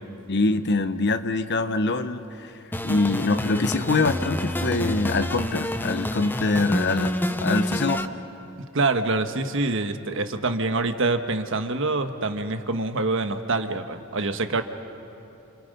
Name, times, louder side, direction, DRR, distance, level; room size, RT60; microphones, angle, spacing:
voice 1, 0.3-2.5 2.8-8.0, left 3 dB, 55° left, 10 dB, 1.0 m, -24 dB
sound 1, 2.7-8.0, left 1 dB, 10° left, 0.7 m, -28 dB
voice 2, 8.7-14.6, right 3 dB, 60° right, 8 dB, 1.3 m, -25 dB
29.5 x 28.0 x 5.5 m, 2.8 s
head